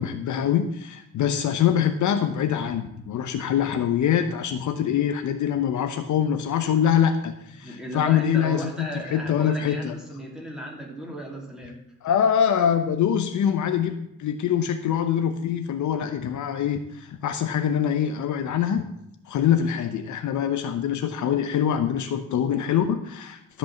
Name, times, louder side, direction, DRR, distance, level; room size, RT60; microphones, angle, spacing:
voice 1, 0.0-9.9 12.0-18.8 19.3-23.6, left 9 dB, 55° left, 6 dB, 0.8 m, -24 dB
voice 2, 7.6-11.8, right 1 dB, ahead, -2 dB, 2.7 m, -36 dB
13.0 x 5.5 x 7.2 m, 0.83 s
cardioid pair, 160°, 36 cm